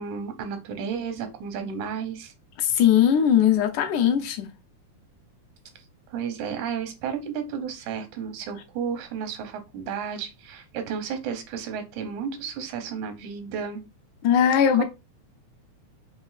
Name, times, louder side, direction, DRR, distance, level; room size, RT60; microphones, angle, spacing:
voice 1, 0.0-2.3 6.1-13.8 14.7-14.8, right 7 dB, 85° right, 2.1 m, -32 dB
voice 2, 2.6-4.5 14.2-14.8, left 9 dB, 85° left, 2.1 m, -19 dB
5.1 x 3.0 x 2.4 m
omnidirectional pair, 3.4 m